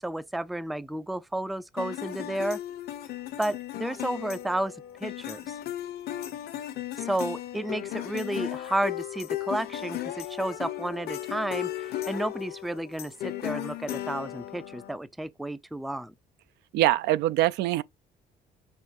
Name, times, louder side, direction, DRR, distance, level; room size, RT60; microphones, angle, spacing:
voice 1, 0.0-2.6 3.4-4.8 5.0-5.5 6.9-16.1, right 1 dB, ahead, 0.3 m, -32 dB
sound 1, 1.8-15.0, left 13 dB, 70° left, 0.8 m, -36 dB
voice 2, 16.7-17.8, right 15 dB, 80° right, 0.4 m, -23 dB
5.0 x 3.7 x 2.6 m
cardioid pair, 110°, 17 cm